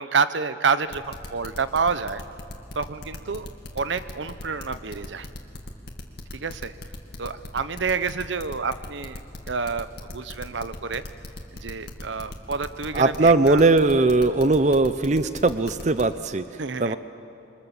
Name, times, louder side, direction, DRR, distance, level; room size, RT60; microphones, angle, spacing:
voice 1, 0.0-2.2 2.8-3.5 3.7-5.3 6.3-6.7 7.2-9.2 9.5-11.0 11.5-13.7 16.6-17.0, right 5 dB, 75° right, 13 dB, 0.8 m, -28 dB
sound 1, 0.9-16.0, left 1 dB, 60° left, 2.2 m, -38 dB
voice 2, 12.9-16.4 16.8-17.0, right 3 dB, 40° right, 12 dB, 0.5 m, -19 dB
28.0 x 24.0 x 7.1 m, 2.8 s
head